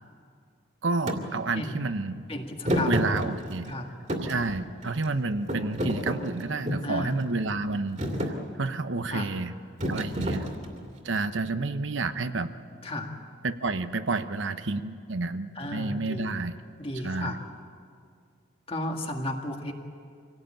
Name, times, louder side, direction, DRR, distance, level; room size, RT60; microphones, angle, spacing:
voice 1, 0.8-2.2 2.8-3.7 4.2-9.5 9.9-10.5 11.0-12.5 13.4-16.6 17.0-17.4, right 3 dB, 75° right, 10 dB, 0.9 m, -30 dB
Thump thud, 1.1-1.2 2.6-3.7 4.1-5.1 5.5-6.9 7.5-7.7 8.0-8.4 9.8-10.9, equal, 35° right, 2.5 m, -29 dB
voice 2, 2.3-3.0 3.7-3.9 6.8-7.2 9.1-9.4 10.8-10.9 12.8-13.2 15.6-16.4 16.8-17.4 18.7-19.7, left 1 dB, 30° left, 3 dB, 1.9 m, -34 dB
26.0 x 17.5 x 8.9 m, 2.2 s
head